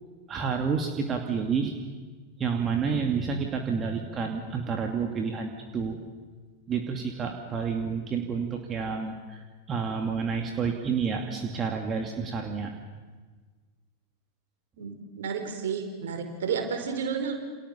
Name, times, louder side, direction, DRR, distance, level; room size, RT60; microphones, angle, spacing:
voice 1, 0.3-1.7 2.4-6.0 6.7-9.4 9.7-12.7, right 5 dB, 25° right, 3 dB, 2.7 m, -29 dB
voice 2, 14.8-17.3, right 6 dB, 60° right, 5 dB, 5.1 m, -31 dB
29.5 x 28.0 x 7.2 m, 1.4 s
figure-of-eight pair, 90°, 0 cm